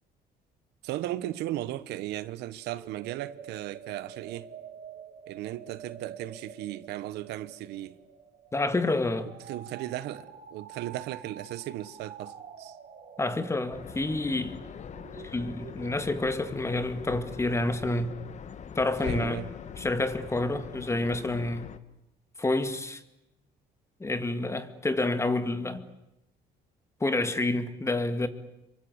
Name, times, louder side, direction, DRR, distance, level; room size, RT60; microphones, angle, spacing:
voice 1, 0.8-4.5 5.3-8.0 9.4-12.8 19.0-19.5, right 14 dB, 85° right, 1.2 m, -36 dB
sound 1, 2.6-15.9, right 7 dB, 45° right, 3.6 m, -48 dB
voice 2, 8.5-9.3 13.2-14.6 15.2-18.1 18.8-19.4 19.8-21.7 22.4-23.0 24.0-25.9 27.0-28.3, left 2 dB, 15° left, 2.0 m, -28 dB
sound 2, 13.7-21.8, left 7 dB, 45° left, 1.3 m, -42 dB
27.0 x 23.5 x 8.1 m
cardioid pair, 110°, 17 cm